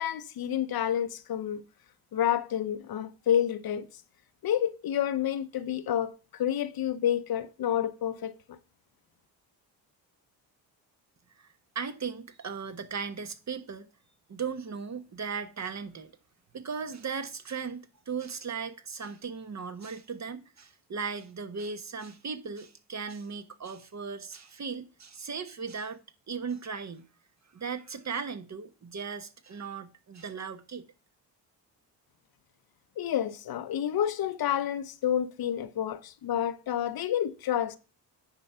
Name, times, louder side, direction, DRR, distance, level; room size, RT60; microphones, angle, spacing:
voice 1, 0.0-1.6 2.1-3.9 4.4-8.6 33.0-37.8, left 10 dB, 55° left, 0.8 m, -29 dB
voice 2, 11.4-13.9 14.3-16.1 16.5-26.0 26.3-27.1 27.5-30.8, right 5 dB, 40° right, 1.2 m, -37 dB
9.6 x 4.5 x 5.6 m
supercardioid pair, 60°, 44 cm